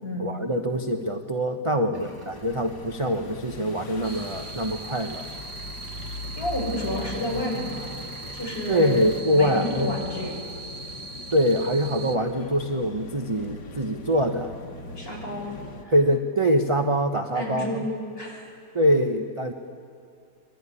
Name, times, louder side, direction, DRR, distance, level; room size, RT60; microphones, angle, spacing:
voice 1, 0.2-5.3 8.7-9.9 11.3-14.5 15.9-17.9 18.7-19.5, equal, 20° right, 5 dB, 0.9 m, -24 dB
sound 1, 1.9-9.2, left 1 dB, 10° left, 2.4 m, -48 dB
sound 2, 2.3-15.8, left 2 dB, 85° left, 2.3 m, -40 dB
sound 3, 4.0-12.2, right 3 dB, 45° right, 1.4 m, -40 dB
voice 2, 6.4-7.9 8.3-9.0 9.3-10.4 15.0-15.6 15.8-15.9 17.3-18.5, left 1 dB, 30° left, -2 dB, 7.5 m, -30 dB
25.5 x 22.5 x 9.9 m, 2.3 s
omnidirectional pair, 1.9 m